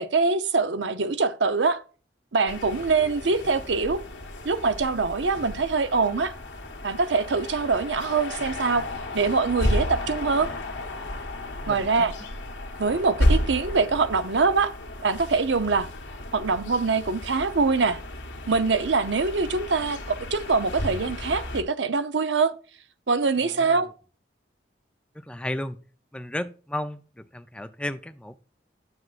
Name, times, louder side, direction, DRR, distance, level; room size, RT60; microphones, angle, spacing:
voice 1, 0.0-1.8 2.3-4.0 4.4-6.3 6.8-8.8 9.1-10.5 11.7-12.1 12.8-14.7 15.0-15.9 16.3-18.0 18.5-22.5 23.1-23.9, right 4 dB, 75° right, 0.7 m, -24 dB
sound 1, 2.5-21.6, left 1 dB, 85° left, 1.6 m, -32 dB
voice 2, 11.6-12.1 23.4-23.8 25.1-25.8 26.1-28.4, left 1 dB, 5° left, 0.4 m, -34 dB
9.7 x 7.5 x 2.5 m
head